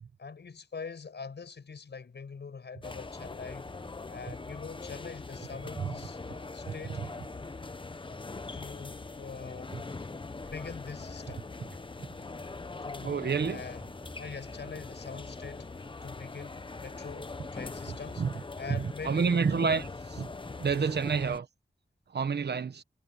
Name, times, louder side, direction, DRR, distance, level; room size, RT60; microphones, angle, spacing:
voice 1, 0.2-3.7 4.1-7.1 8.5-9.9 10.4-11.5 12.8-13.9 14.2-18.2 18.6-19.9, left 5 dB, 80° left, 6.1 m, -44 dB
sound 1, 2.8-21.4, left 3 dB, 30° left, 0.8 m, -42 dB
voice 2, 6.7-7.0 12.0-12.1 13.0-13.6 18.2-18.3 18.7-19.9 20.2-20.3 20.6-21.5 22.1-22.8, right 5 dB, 70° right, 1.1 m, -29 dB
sound 2, 13.8-14.7 19.1-20.0, right 1 dB, 10° right, 5.2 m, -53 dB
wide cardioid pair, 110°, 18 cm